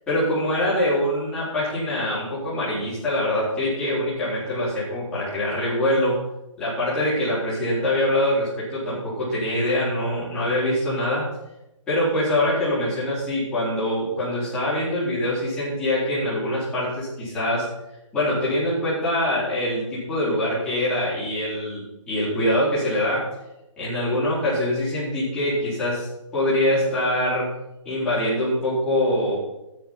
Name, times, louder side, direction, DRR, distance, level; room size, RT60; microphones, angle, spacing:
voice 1, 0.1-6.2 6.6-11.3 11.9-17.7 18.1-23.3 23.8-27.5 27.8-29.4, left 1 dB, 5° left, -11 dB, 4.0 m, -24 dB
13.0 x 9.8 x 4.4 m, 0.92 s
hypercardioid pair, 175°, 17 cm